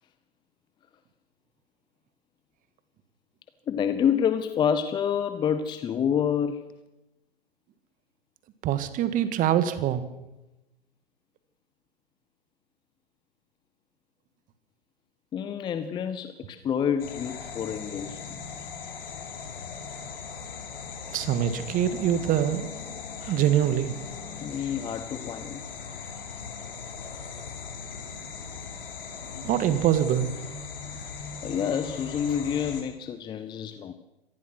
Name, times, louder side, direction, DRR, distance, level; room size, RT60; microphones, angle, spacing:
voice 1, 3.7-6.7 15.3-18.4 24.4-25.6 31.4-33.9, left 8 dB, 15° left, 11 dB, 0.8 m, -28 dB
voice 2, 8.6-10.0 21.1-22.7 23.3-23.9 29.4-30.3, right 11 dB, 25° right, 12 dB, 1.9 m, -24 dB
sound 1, 17.0-32.8, left 5 dB, 55° left, 5.1 m, -39 dB
25.5 x 19.0 x 6.1 m, 0.97 s
figure-of-eight pair, 115°, 33 cm